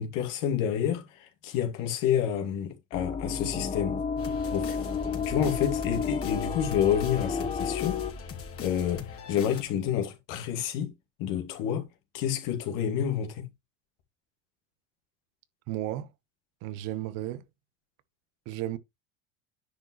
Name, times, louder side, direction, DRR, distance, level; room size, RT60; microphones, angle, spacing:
voice 1, 0.0-4.0 4.5-4.8 5.3-8.0 8.6-10.9 11.2-11.9 12.1-13.5, left 9 dB, 60° left, 2.5 m, -29 dB
sound 1, 2.9-8.1, left 6 dB, 20° left, 1.1 m, -31 dB
sound 2, 4.2-9.6, left 5 dB, 40° left, 2.8 m, -42 dB
voice 2, 15.7-16.1 16.6-17.4 18.5-18.8, right 14 dB, 60° right, 1.2 m, -33 dB
10.0 x 5.9 x 3.1 m
hypercardioid pair, 85°, 36 cm